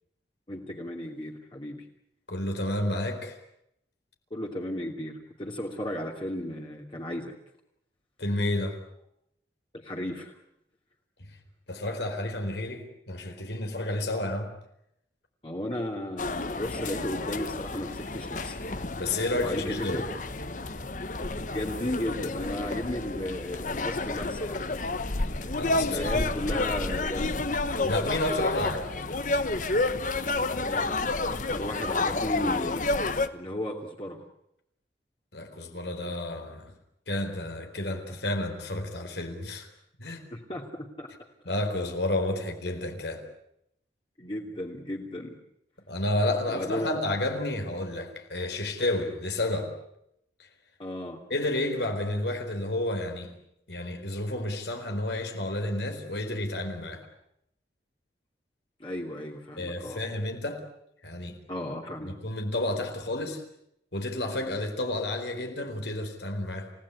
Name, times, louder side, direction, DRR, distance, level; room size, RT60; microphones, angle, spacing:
voice 1, 0.5-1.8 4.3-7.3 9.8-10.4 15.4-18.6 19.4-20.0 21.5-24.7 25.8-27.4 30.5-32.8 33.3-34.2 40.3-40.6 41.0-41.1 44.2-45.3 46.5-47.0 50.8-51.2 58.8-60.0 61.5-62.1, left 1 dB, 30° left, 2.8 m, -34 dB
voice 2, 2.3-3.4 8.2-8.8 11.7-14.5 19.0-20.1 25.6-26.7 27.8-29.0 35.3-36.7 37.1-39.7 40.0-40.2 41.4-43.2 45.9-49.7 51.3-53.4 53.7-57.0 59.6-60.6 61.0-61.4 62.0-63.4 63.9-66.7, left 1 dB, 75° left, 4.3 m, -31 dB
sound 1, 16.2-33.3, left 2 dB, 45° left, 1.2 m, -30 dB
29.0 x 17.0 x 9.8 m
head